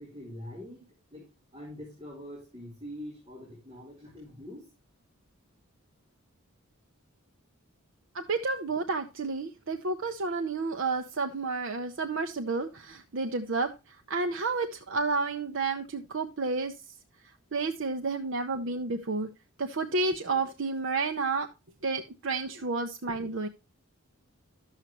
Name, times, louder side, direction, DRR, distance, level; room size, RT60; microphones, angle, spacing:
voice 1, 0.0-4.7, equal, 25° right, -5 dB, 3.4 m, -44 dB
voice 2, 8.1-13.7 14.1-16.7 17.5-19.3 19.6-21.5 21.8-23.5, right 3 dB, 55° right, 5 dB, 0.7 m, -30 dB
12.0 x 7.3 x 3.0 m, 0.28 s
head